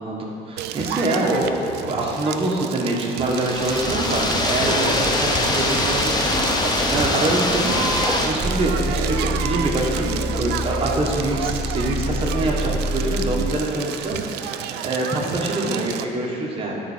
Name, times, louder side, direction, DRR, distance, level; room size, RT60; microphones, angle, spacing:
voice 1, 0.0-16.8, right 2 dB, 35° right, -2 dB, 1.5 m, -25 dB
Crackle, 0.6-16.0, right 9 dB, 80° right, 0.4 m, -31 dB
sound 1, 3.3-8.3, left 2 dB, 25° left, 0.9 m, -22 dB
sound 2, 8.4-13.6, equal, ahead, 0.4 m, -27 dB
10.5 x 4.6 x 4.5 m, 2.8 s
cardioid pair, 110°, 17 cm